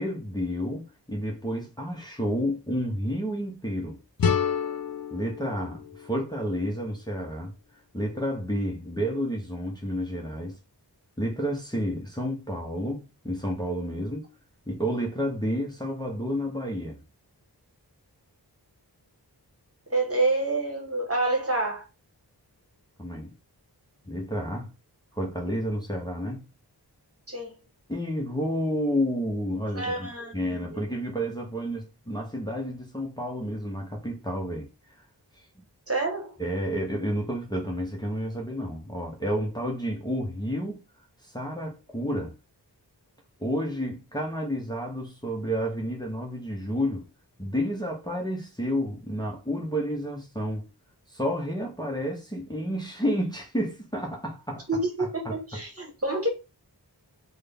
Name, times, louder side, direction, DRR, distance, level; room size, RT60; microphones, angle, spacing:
voice 1, 0.0-4.0 5.1-7.5 7.9-10.6 11.2-14.3 14.7-17.0 23.0-23.3 24.1-24.7 25.1-26.4 27.9-34.7 36.4-40.8 41.2-42.3 43.4-47.1 47.4-50.7 51.1-55.6, equal, 10° left, 0.7 m, -30 dB
sound 1, 4.2-7.1, left 6 dB, 55° left, 0.5 m, -30 dB
voice 2, 19.9-21.9 27.3-27.5 29.7-30.9 35.9-36.3 54.7-56.3, right 2 dB, 35° right, 1.2 m, -28 dB
3.6 x 2.2 x 3.4 m
wide cardioid pair, 50°, 41 cm